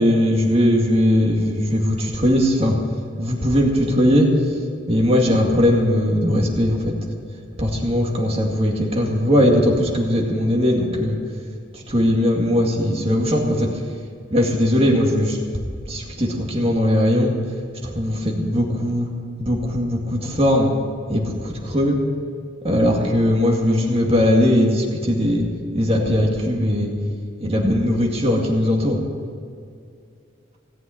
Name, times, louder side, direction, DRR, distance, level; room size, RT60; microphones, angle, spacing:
voice 1, 0.0-2.8 3.2-4.3 4.9-6.9 7.6-11.2 11.7-13.7 14.3-15.4 15.9-17.3 17.8-19.1 19.4-20.7 21.1-22.0 22.6-25.4 25.7-26.9 27.4-29.0, equal, 30° right, 0 dB, 2.2 m, -19 dB
17.5 x 7.6 x 9.1 m, 2.3 s
head